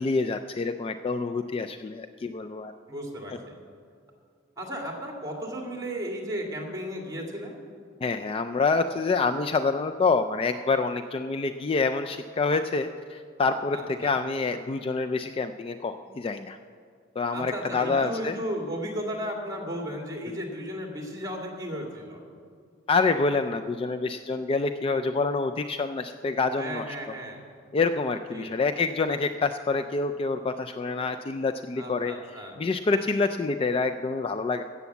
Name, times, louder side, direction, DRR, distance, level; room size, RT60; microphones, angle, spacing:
voice 1, 0.0-2.7 3.3-3.4 8.0-16.6 17.2-18.4 22.9-26.8 27.7-32.1 32.6-34.6, left 4 dB, 30° left, 8 dB, 0.3 m, -27 dB
voice 2, 2.9-3.5 4.6-7.6 13.7-14.2 17.3-22.2 26.6-27.4 28.3-28.5 31.8-32.5, equal, 20° right, 0 dB, 2.2 m, -35 dB
14.0 x 7.0 x 8.2 m, 2.1 s
head